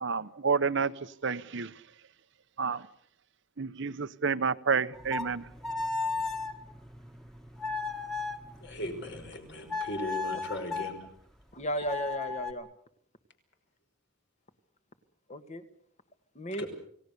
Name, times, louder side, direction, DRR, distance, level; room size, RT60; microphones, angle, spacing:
voice 1, 0.0-0.9 1.2-1.7 2.6-2.8 3.6-5.4, right 5 dB, 60° right, 0.9 m, -29 dB
sound 1, 4.9-9.4 9.7-10.9 11.8-12.5, left 4 dB, ahead, 1.8 m, -36 dB
voice 2, 8.6-11.0 16.6-16.7, left 1 dB, 55° left, 5.2 m, -37 dB
voice 3, 11.5-12.7 15.3-15.6 16.4-16.6, equal, 35° left, 1.9 m, -34 dB
29.5 x 18.5 x 6.9 m
head